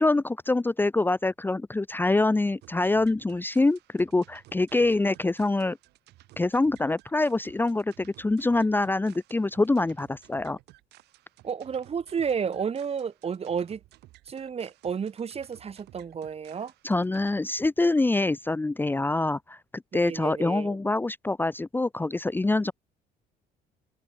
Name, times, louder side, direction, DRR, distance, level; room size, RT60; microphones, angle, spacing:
voice 1, 0.0-5.8 6.4-10.6 16.8-22.7, left 2 dB, 10° left, 0.9 m, -25 dB
sound 1, 2.6-17.4, right 17 dB, 80° right, 7.9 m, -56 dB
voice 2, 11.4-13.8 14.3-16.7 19.9-20.8, right 6 dB, 35° right, 2.7 m, -31 dB
open air
cardioid pair, 110°, 17 cm